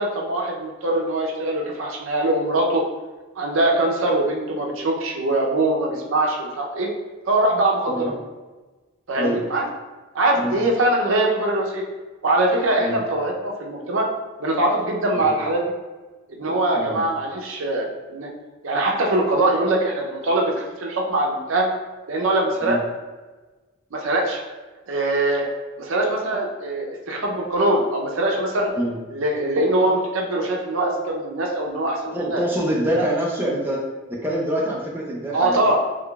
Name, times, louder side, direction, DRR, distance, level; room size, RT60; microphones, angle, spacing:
voice 1, 0.0-2.8 3.4-6.9 7.3-8.1 9.1-9.6 10.1-11.8 12.2-14.1 14.4-15.7 16.3-18.3 18.6-21.7 22.1-22.8 23.9-24.4 24.9-25.4 25.8-28.7 29.1-32.4 32.9-33.0 35.3-35.8, right 1 dB, 70° right, 0 dB, 0.6 m, -22 dB
voice 2, 32.1-33.8 34.1-35.8, right 1 dB, 10° right, -3 dB, 0.4 m, -25 dB
3.7 x 3.2 x 2.3 m, 1.2 s
head